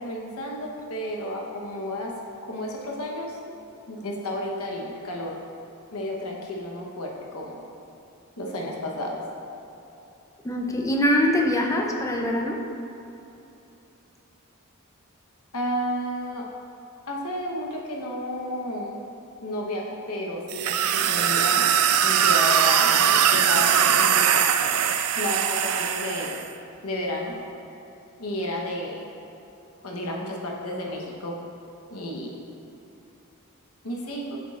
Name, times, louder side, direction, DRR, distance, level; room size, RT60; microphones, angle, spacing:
voice 1, 0.0-2.1 2.4-3.4 3.9-5.3 5.9-7.6 8.4-9.2 15.5-16.5 17.1-18.9 19.4-21.7 22.0-24.3 25.2-26.4 26.8-27.3 28.2-29.0 29.8-31.4 31.9-32.3 33.8-34.4, left 1 dB, 75° left, -1 dB, 1.0 m, -32 dB
voice 2, 10.4-12.6, equal, 15° left, 1 dB, 0.6 m, -23 dB
sound 1, 20.5-26.4, right 8 dB, 75° right, 0.4 m, -21 dB
8.1 x 7.4 x 2.5 m, 2.9 s
head